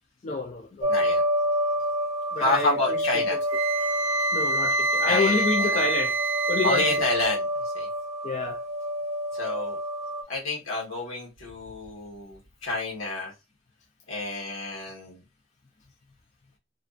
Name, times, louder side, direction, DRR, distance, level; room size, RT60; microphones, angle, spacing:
voice 1, 0.2-0.9 2.3-3.4 4.3-6.2 6.5-6.9 8.2-8.6, left 4 dB, 35° left, 0.3 m, -28 dB
sound 1, 0.8-10.2, equal, 30° right, 0.4 m, -28 dB
voice 2, 0.9-1.2 2.4-3.4 5.0-5.8 6.6-7.9 9.3-9.8 10.3-13.3 14.1-15.2, left 2 dB, 90° left, 1.1 m, -29 dB
Wind instrument woodwind instrument, 3.5-7.0, right 2 dB, 80° right, 0.6 m, -26 dB
2.4 x 2.3 x 2.3 m
head